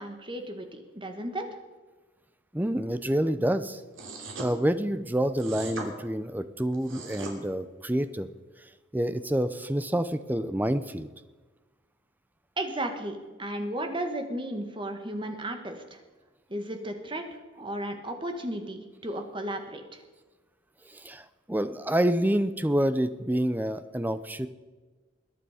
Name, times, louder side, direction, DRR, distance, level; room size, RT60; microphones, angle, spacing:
voice 1, 0.0-1.4 12.6-16.0 16.5-17.2 17.5-20.0, right 1 dB, 25° right, 5 dB, 1.4 m, -34 dB
voice 2, 2.5-3.8 4.4-8.3 8.6-11.1 20.9-24.5, right 1 dB, 10° right, 12 dB, 0.5 m, -28 dB
sound 1, 3.9-4.5 5.4-5.9 6.7-7.3, right 3 dB, 75° right, 3.0 m, -39 dB
21.5 x 9.5 x 5.0 m, 1.3 s
head